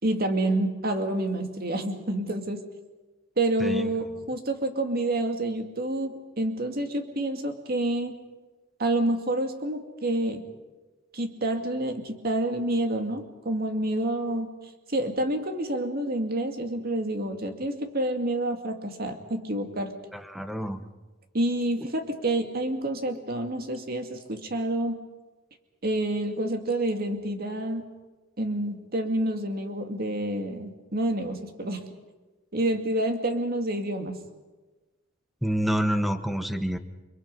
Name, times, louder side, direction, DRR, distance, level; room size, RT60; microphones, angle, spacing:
voice 1, 0.0-2.6 3.4-8.2 8.8-10.4 11.1-14.5 14.9-19.9 21.3-25.0 25.8-27.9 28.4-31.9 32.5-34.2, right 1 dB, 50° right, 5 dB, 2.2 m, -28 dB
voice 2, 3.6-3.9 20.1-20.8 35.4-36.8, equal, ahead, 9 dB, 1.1 m, -27 dB
29.5 x 22.0 x 5.5 m, 1.2 s
head